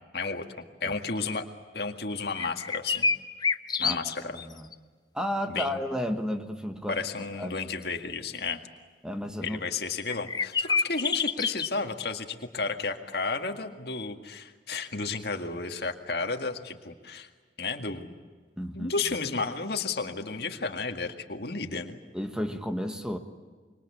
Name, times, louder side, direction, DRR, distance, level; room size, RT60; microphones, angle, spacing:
voice 1, 0.1-0.5 0.8-1.5 1.7-3.1 3.8-4.4 5.5-5.8 6.9-8.6 9.4-17.3 17.6-18.1 18.7-22.0, left 4 dB, 60° left, 5 dB, 2.0 m, -32 dB
sound 1, 2.4-4.4 4.7-4.8 10.1-11.7, left 5 dB, 25° left, 0.7 m, -27 dB
voice 2, 4.2-4.7 5.1-7.0 7.4-7.6 9.0-9.6 18.6-18.9 22.1-23.2, equal, 5° right, 6 dB, 1.4 m, -32 dB
26.5 x 23.5 x 8.5 m, 1.5 s
head